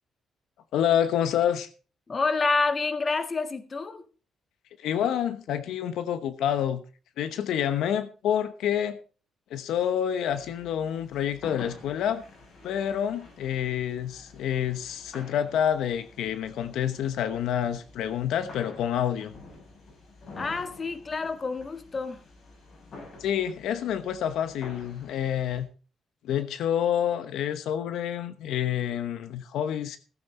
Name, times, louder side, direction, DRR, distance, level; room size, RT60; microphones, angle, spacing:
voice 1, 0.7-1.7 4.8-6.8 7.2-9.0 9.5-12.2 12.6-19.3 23.2-25.7 26.2-30.0, left 9 dB, 80° left, 1.0 m, -28 dB
voice 2, 2.1-4.1 20.4-22.2, left 3 dB, 35° left, 1.6 m, -28 dB
sound 1, 10.2-25.6, left 2 dB, 60° left, 7.6 m, -49 dB
16.0 x 8.8 x 4.2 m
cardioid pair, 90°, 0 cm